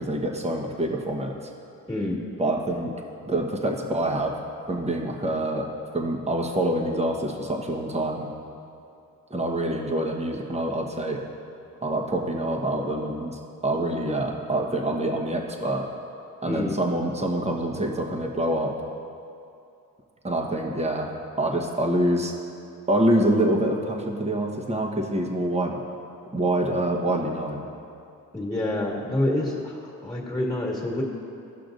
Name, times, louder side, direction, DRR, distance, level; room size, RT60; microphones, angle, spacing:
voice 1, 0.0-1.5 2.4-2.9 3.2-4.3 4.7-5.7 5.9-8.3 9.3-11.2 11.8-15.9 16.4-18.7 20.2-22.3 22.9-25.7 26.3-27.6, right 1 dB, 20° right, 1 dB, 1.1 m, -26 dB
voice 2, 1.9-2.2 16.5-16.8 28.3-31.0, left 1 dB, 10° left, -3 dB, 1.8 m, -27 dB
15.5 x 5.8 x 2.6 m, 2.6 s
cardioid pair, 70°, 34 cm